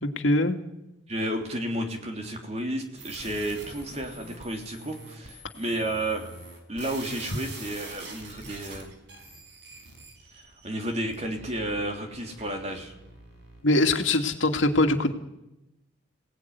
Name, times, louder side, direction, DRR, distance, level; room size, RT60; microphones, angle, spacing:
voice 1, 0.0-0.6 13.6-15.1, left 2 dB, 85° left, 5 dB, 2.3 m, -22 dB
voice 2, 1.1-6.3 6.7-8.9 10.6-12.9, right 1 dB, 35° right, 3 dB, 3.2 m, -32 dB
sound 1, 3.0-14.1, right 2 dB, 65° right, 5.4 m, -45 dB
27.5 x 18.0 x 9.5 m, 0.94 s
head